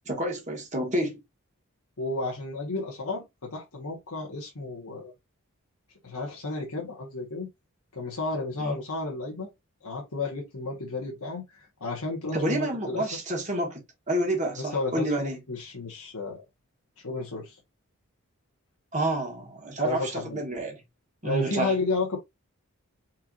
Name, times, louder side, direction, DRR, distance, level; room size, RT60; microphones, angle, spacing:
voice 1, 0.0-1.2 8.6-8.8 12.3-15.4 18.9-20.8 21.2-21.7, right 1 dB, 35° right, 1.7 m, -29 dB
voice 2, 2.0-5.1 6.0-7.5 7.9-9.5 9.8-13.2 14.6-16.4 17.0-17.6 19.8-20.4 21.2-22.2, left 3 dB, 90° left, 1.5 m, -32 dB
4.6 x 4.4 x 2.5 m
head